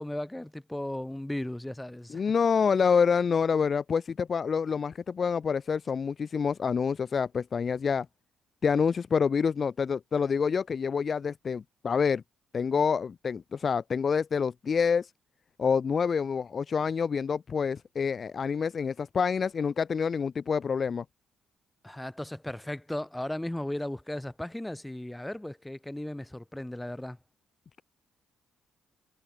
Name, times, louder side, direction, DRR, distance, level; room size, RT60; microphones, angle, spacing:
voice 1, 0.0-2.2 21.8-27.2, left 1 dB, 10° left, 2.4 m, -36 dB
voice 2, 2.1-8.1 8.6-12.2 12.5-15.1 15.6-21.0, left 6 dB, 45° left, 0.4 m, -27 dB
cardioid pair, 90°, 0 cm